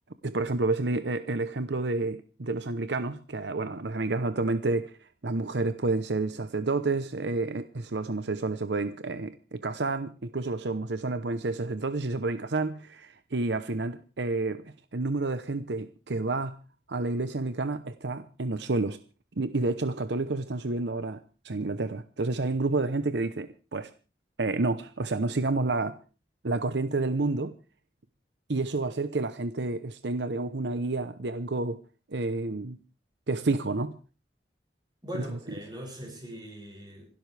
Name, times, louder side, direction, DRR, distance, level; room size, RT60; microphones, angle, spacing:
voice 1, 0.2-5.0 5.2-16.6 16.9-19.0 19.4-21.2 21.4-23.9 24.4-26.0 26.4-27.5 28.5-31.8 32.1-32.8 33.3-34.0 35.1-35.2, right 3 dB, 75° right, 11 dB, 0.8 m, -29 dB
voice 2, 35.0-37.1, equal, 25° right, 0 dB, 7.3 m, -40 dB
27.0 x 12.5 x 3.4 m, 0.34 s
head